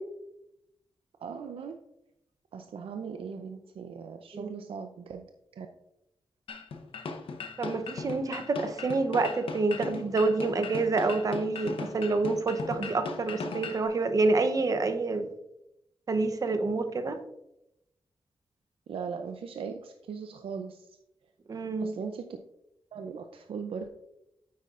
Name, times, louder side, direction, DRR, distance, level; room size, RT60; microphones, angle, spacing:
voice 1, 1.2-1.8 2.5-5.3 5.5-5.7 18.9-21.0 21.8-22.3 22.9-23.9, right 6 dB, 80° right, 5 dB, 0.5 m, -39 dB
sound 1, 6.5-13.8, left 4 dB, 80° left, 0.8 m, -38 dB
voice 2, 7.6-15.3 16.1-17.2 21.5-21.9, right 3 dB, 40° right, 8 dB, 0.7 m, -28 dB
9.3 x 8.4 x 2.4 m, 0.85 s
wide cardioid pair, 175°, 9 cm